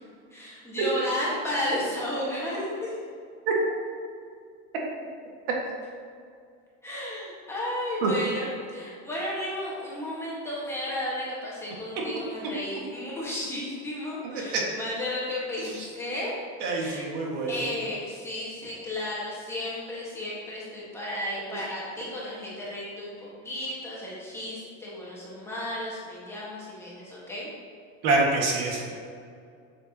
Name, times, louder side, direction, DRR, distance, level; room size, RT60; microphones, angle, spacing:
voice 1, 0.3-3.0 6.8-16.4 16.8-17.0 17.5-27.5, left 1 dB, 10° left, -7 dB, 1.5 m, -33 dB
voice 2, 14.2-14.6 16.6-17.5 28.0-28.8, right 3 dB, 70° right, -1 dB, 1.8 m, -26 dB
8.5 x 7.1 x 2.9 m, 2.3 s
cardioid pair, 175°, 32 cm